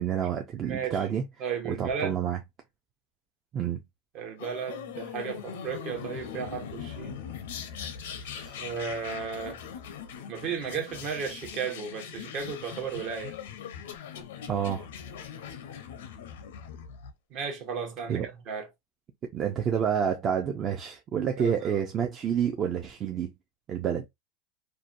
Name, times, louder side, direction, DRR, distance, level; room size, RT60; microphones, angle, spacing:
voice 1, 0.0-1.2 1.6-2.4 3.5-3.8 8.2-8.7 14.5-14.9 18.1-18.3 19.3-23.3 23.7-24.1, right 8 dB, 30° right, 0.4 m, -29 dB
voice 2, 0.6-1.1 1.4-2.2 4.1-7.2 8.6-9.6 10.3-13.4 17.3-18.7 21.4-21.8, right 6 dB, 50° right, 0.9 m, -34 dB
sound 1, 4.4-17.1, left 8 dB, 90° left, 0.5 m, -41 dB
2.7 x 2.2 x 2.5 m
supercardioid pair, 135°, 0 cm